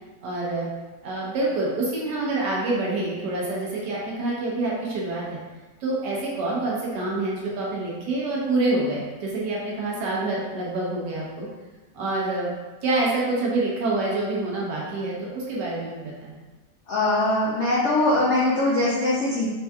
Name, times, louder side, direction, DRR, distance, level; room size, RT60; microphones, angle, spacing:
voice 1, 0.2-0.7 1.0-5.4 5.8-11.5 11.9-12.5 12.8-16.4, right 2 dB, 75° right, -4 dB, 1.5 m, -27 dB
voice 2, 16.9-19.5, left 2 dB, 80° left, -5 dB, 0.6 m, -22 dB
4.5 x 2.7 x 2.3 m, 1.2 s
omnidirectional pair, 1.9 m